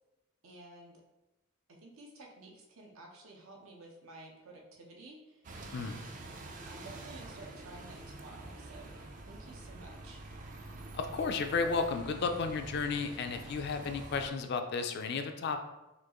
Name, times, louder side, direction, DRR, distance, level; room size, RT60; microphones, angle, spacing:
voice 1, 0.4-1.0 1.8-5.5 6.7-9.0 9.3-10.3, right 2 dB, 80° right, 0 dB, 0.8 m, -52 dB
Bus, 5.4-14.3, right 2 dB, 40° right, 0.4 m, -47 dB
voice 2, 10.9-15.6, left 4 dB, 50° left, 6 dB, 0.3 m, -33 dB
4.3 x 2.5 x 2.9 m, 0.98 s
head